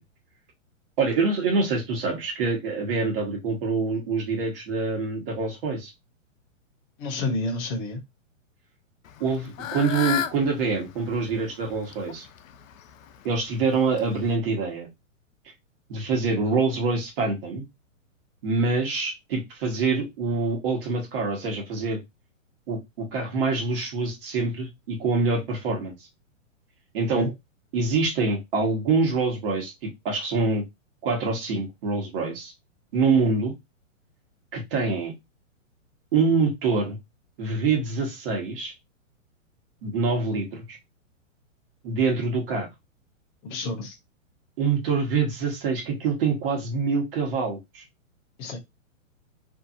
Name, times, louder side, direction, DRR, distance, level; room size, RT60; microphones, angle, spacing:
voice 1, 1.0-5.9 9.2-12.2 13.2-14.9 15.9-17.6 18.4-22.0 22.7-25.9 26.9-27.3 27.7-30.6 31.0-32.5 32.9-33.5 34.5-35.1 36.1-37.0 37.4-38.7 39.8-40.8 41.8-42.7 44.6-47.8, right 4 dB, 45° right, 1.2 m, -25 dB
voice 2, 7.0-8.0 27.1-27.3 43.4-44.0 48.4-48.6, left 2 dB, 20° left, 0.5 m, -29 dB
Fowl / Bird, 9.1-14.4, left 9 dB, 80° left, 0.5 m, -35 dB
2.7 x 2.5 x 2.4 m
hypercardioid pair, 150°, 39 cm